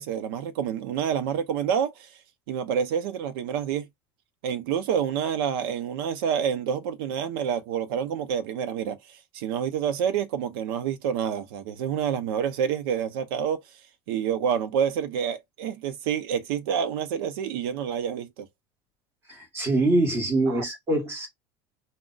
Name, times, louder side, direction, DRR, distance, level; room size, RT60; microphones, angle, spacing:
voice 1, 0.0-2.1 2.5-3.9 4.4-13.6 14.1-18.5 20.5-20.6, right 8 dB, 85° right, 0.7 m, -28 dB
voice 2, 19.3-21.3, right 2 dB, 20° right, 1.1 m, -24 dB
2.4 x 2.1 x 3.8 m
cardioid pair, 180°, 12 cm